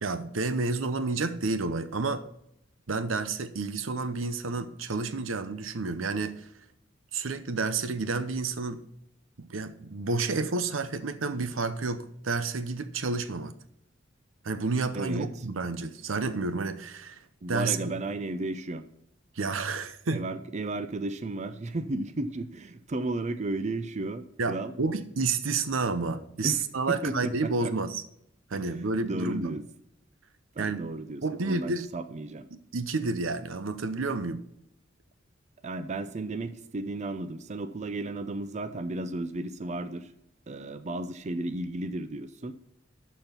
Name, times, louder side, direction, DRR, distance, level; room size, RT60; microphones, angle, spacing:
voice 1, 0.0-2.2 2.9-6.4 7.1-8.8 9.4-13.5 14.4-17.2 17.5-17.8 19.4-20.2 24.4-28.0 28.5-29.6 30.6-30.9 31.2-31.9 32.5-34.4, right 3 dB, 90° right, 12 dB, 0.8 m, -30 dB
voice 2, 14.9-15.3 17.4-18.8 20.1-24.7 26.4-26.6 26.9-27.7 28.5-28.6 29.0-29.6 30.6-32.5 35.6-40.1 40.5-42.5, right 2 dB, 35° right, 10 dB, 0.5 m, -34 dB
12.0 x 4.4 x 5.8 m, 0.75 s
head